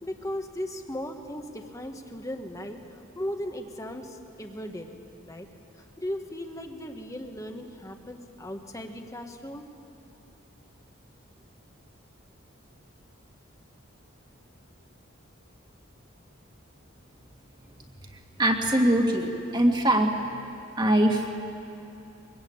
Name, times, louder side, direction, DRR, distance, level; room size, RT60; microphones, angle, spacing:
voice 1, 0.0-4.9 5.2-5.5 6.0-9.7, left 1 dB, 15° left, 4 dB, 1.5 m, -37 dB
voice 2, 18.4-20.1 20.8-21.3, right 1 dB, 20° right, 2 dB, 2.0 m, -22 dB
24.0 x 21.5 x 8.8 m, 2.8 s
head